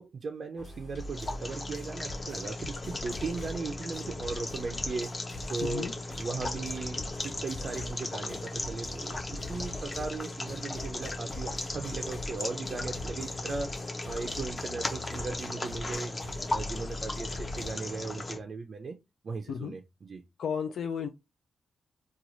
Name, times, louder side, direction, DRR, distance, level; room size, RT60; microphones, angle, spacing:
voice 1, 0.0-5.9 6.2-16.1 16.5-19.0 19.2-20.2, right 4 dB, 45° right, 0.4 m, -37 dB
sound 1, 0.6-17.7, left 1 dB, 45° left, 1.1 m, -43 dB
sound 2, 0.9-18.4, left 2 dB, 25° left, 0.6 m, -37 dB
voice 2, 5.6-5.9 19.5-19.7 20.4-21.1, left 7 dB, 80° left, 0.3 m, -33 dB
3.0 x 2.3 x 3.9 m
wide cardioid pair, 150°, 0 cm